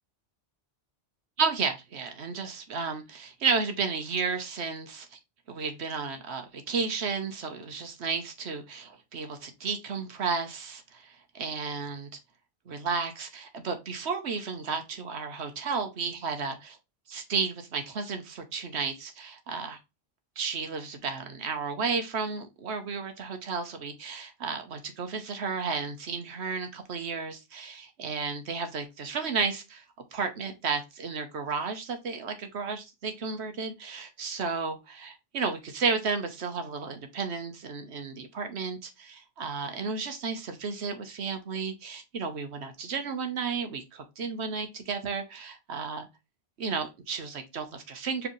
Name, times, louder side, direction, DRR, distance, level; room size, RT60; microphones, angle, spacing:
voice 1, 1.4-5.2 5.5-12.1 12.7-16.8 17.1-19.8 20.4-29.8 30.1-46.1 46.6-48.3, right 5 dB, 90° right, 1.2 m, -33 dB
4.8 x 3.4 x 3.1 m
omnidirectional pair, 1.1 m